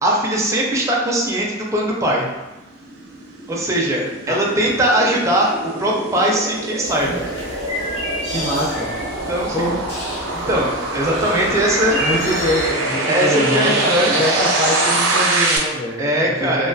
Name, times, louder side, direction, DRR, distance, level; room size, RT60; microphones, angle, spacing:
voice 1, 0.0-2.3 3.5-7.2 9.3-9.5 10.3-12.0 13.1-14.2 16.0-16.7, right 1 dB, 15° right, -2 dB, 0.4 m, -20 dB
sound 1, 2.4-15.6, right 2 dB, 85° right, 0.5 m, -24 dB
sound 2, 6.8-12.7, equal, 30° left, 1.2 m, -30 dB
voice 2, 8.3-8.9 9.5-9.8 12.0-16.2 16.4-16.7, equal, 10° left, -11 dB, 0.8 m, -24 dB
2.3 x 2.2 x 2.5 m, 1.1 s
head